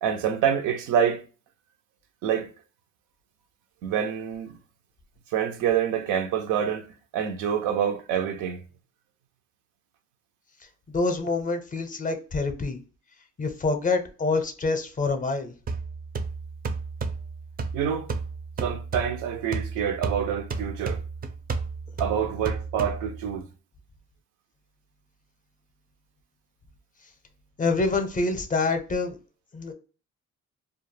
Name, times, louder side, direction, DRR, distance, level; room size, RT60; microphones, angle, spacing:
voice 1, 0.0-1.2 2.2-2.5 3.8-4.6 5.3-6.9 7.1-8.6 17.7-18.1 18.6-21.0 22.0-23.5, right 8 dB, 90° right, 0.5 m, -26 dB
voice 2, 10.9-12.8 13.4-15.5 27.6-29.2 29.5-29.7, left 3 dB, 25° left, 0.5 m, -26 dB
sound 1, 15.7-23.4, right 4 dB, 30° right, 0.4 m, -33 dB
2.3 x 2.0 x 3.1 m
cardioid pair, 90°, 30 cm